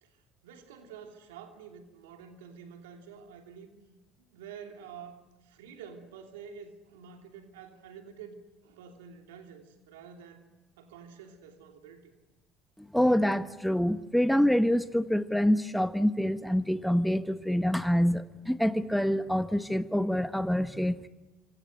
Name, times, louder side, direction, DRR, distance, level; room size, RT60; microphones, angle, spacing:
voice 1, 0.0-3.7 4.3-10.5 10.8-12.1, right 7 dB, 80° right, 2.9 m, -48 dB
voice 2, 12.8-21.1, equal, ahead, 1.2 m, -26 dB
28.0 x 26.0 x 6.5 m
hypercardioid pair, 60°, 0 cm